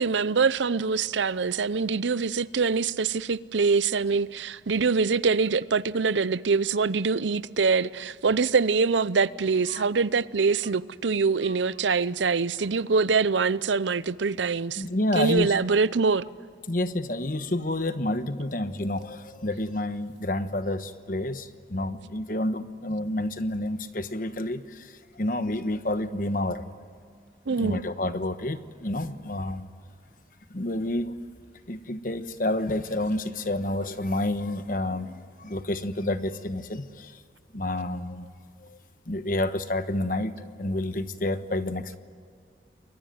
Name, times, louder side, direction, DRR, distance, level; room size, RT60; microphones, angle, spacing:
voice 1, 0.0-14.8 15.2-16.2 27.5-27.8, right 4 dB, 85° right, 0.6 m, -24 dB
voice 2, 14.8-15.6 16.7-26.7 27.5-29.7 30.5-31.1 31.7-37.2 37.5-38.3 38.6-38.8 39.1-42.0, left 1 dB, 50° left, 1.2 m, -29 dB
28.5 x 22.0 x 9.4 m
head